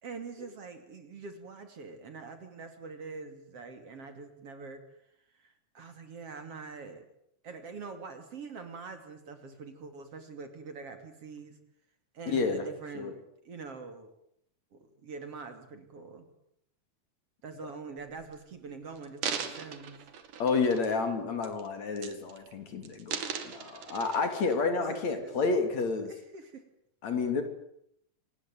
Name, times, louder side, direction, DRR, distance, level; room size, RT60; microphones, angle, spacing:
voice 1, 0.0-4.8 5.3-7.1 7.4-11.6 12.1-13.2 13.5-14.1 14.7-16.3 17.4-20.0 24.8-26.6, right 4 dB, 50° right, 7 dB, 3.6 m, -44 dB
voice 2, 12.3-12.7 12.9-13.1 20.4-26.1 27.0-27.4, left 4 dB, 60° left, 7 dB, 4.2 m, -30 dB
sound 1, 18.2-18.3 19.0-21.1 21.4-21.7 22.0-22.5 22.8-24.6 25.1-25.2, right 7 dB, 75° right, 3.6 m, -39 dB
26.0 x 19.5 x 9.3 m, 0.74 s
omnidirectional pair, 3.6 m